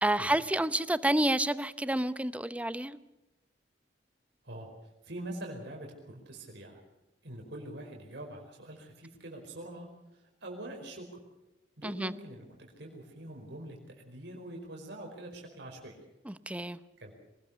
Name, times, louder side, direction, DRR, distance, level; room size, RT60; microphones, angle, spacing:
voice 1, 0.0-3.0 11.8-12.1 16.3-16.8, right 1 dB, 10° right, 13 dB, 0.7 m, -29 dB
voice 2, 4.4-6.8 7.2-11.1 11.8-16.0 17.0-17.1, right 1 dB, 65° right, 1 dB, 5.0 m, -44 dB
25.0 x 19.5 x 7.0 m, 0.96 s
head